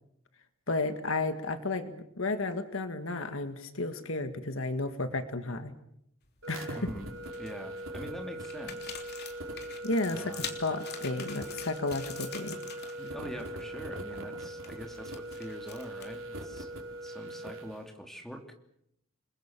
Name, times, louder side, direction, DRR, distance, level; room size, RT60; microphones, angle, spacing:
voice 1, 0.7-5.7 6.5-6.8 9.8-12.6, left 2 dB, 70° left, 9 dB, 1.9 m, -33 dB
sound 1, 6.3-6.8 7.2-7.8 8.4-13.1 13.4-13.6 14.0-16.3, left 7 dB, 50° left, 3.3 m, -44 dB
sound 2, 6.4-17.8, right 1 dB, 65° right, 5.1 m, -41 dB
voice 2, 6.8-9.0 10.1-10.6 13.0-16.7 17.0-18.5, equal, ahead, 4 dB, 2.9 m, -44 dB
29.0 x 21.5 x 7.5 m, 0.75 s
head